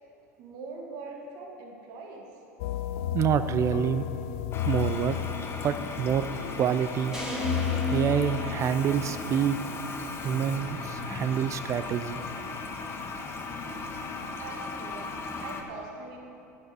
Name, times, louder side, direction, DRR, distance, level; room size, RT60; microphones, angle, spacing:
voice 1, 0.4-2.4 14.2-15.1 15.4-16.2, right 3 dB, 55° right, 0 dB, 1.6 m, -42 dB
sound 1, 2.6-14.3, left 12 dB, 60° left, 0.4 m, -35 dB
voice 2, 3.1-4.0 4.6-5.2 5.6-6.3 6.6-7.2 7.9-9.6 10.2-12.2, right 9 dB, 35° right, 12 dB, 0.4 m, -27 dB
Toilet flush, 4.5-15.6, left 3 dB, 30° left, 1.1 m, -37 dB
sound 2, 7.1-9.4, right 1 dB, 5° right, 2.8 m, -35 dB
10.5 x 10.0 x 4.8 m, 2.7 s
figure-of-eight pair, 80°, 8 cm